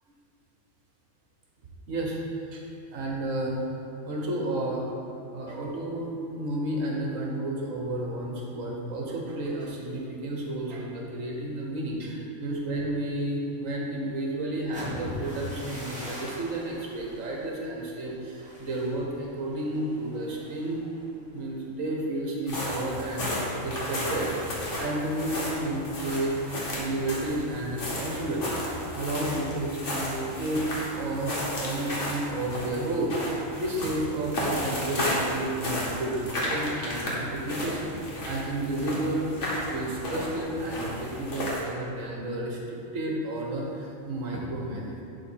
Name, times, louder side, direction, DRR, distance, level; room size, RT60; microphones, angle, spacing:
voice 1, 1.9-2.2 2.5-2.6 2.9-3.6 4.0-4.8 5.3-20.8 21.3-28.6 28.9-30.7 31.0-36.3 36.5-39.3 39.7-45.0, right 1 dB, 70° right, -2 dB, 1.5 m, -31 dB
sound 1, 14.6-22.4 22.8-23.1 23.5-23.9, left 1 dB, 5° right, 1.6 m, -43 dB
sound 2, 22.5-41.6, left 1 dB, 60° left, 1.7 m, -33 dB
10.5 x 3.6 x 4.5 m, 2.7 s
omnidirectional pair, 1.4 m